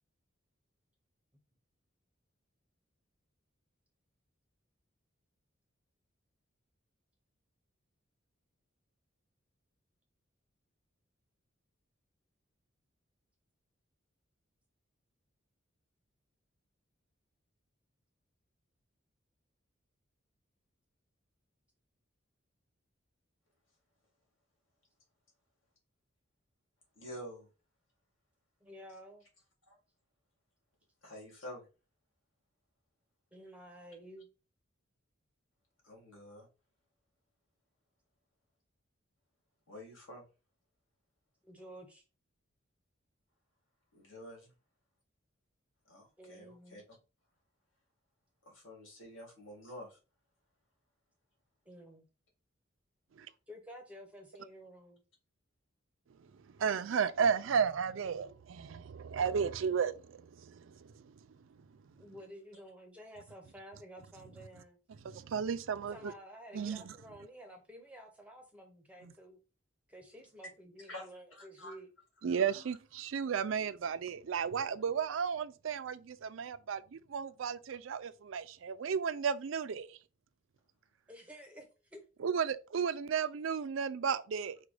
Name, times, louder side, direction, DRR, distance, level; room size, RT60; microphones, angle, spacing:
voice 1, 27.0-27.5 29.7-29.8 31.0-31.7 35.8-36.5 39.7-40.2 43.9-44.5 45.9-46.8 48.5-50.0 70.9-71.7 72.2-72.6, equal, 75° left, 2.1 m, -49 dB
voice 2, 28.6-29.2 33.3-34.3 41.4-42.0 46.2-46.8 51.7-52.0 53.5-55.0 62.0-64.8 65.9-69.4 69.9-71.9 81.1-82.0, equal, 5° right, 0.6 m, -52 dB
voice 3, 56.6-61.1 64.9-66.1 66.5-66.9 69.0-69.1 72.2-80.0 82.2-84.6, right 6 dB, 75° right, 0.4 m, -34 dB
4.9 x 2.2 x 4.8 m
head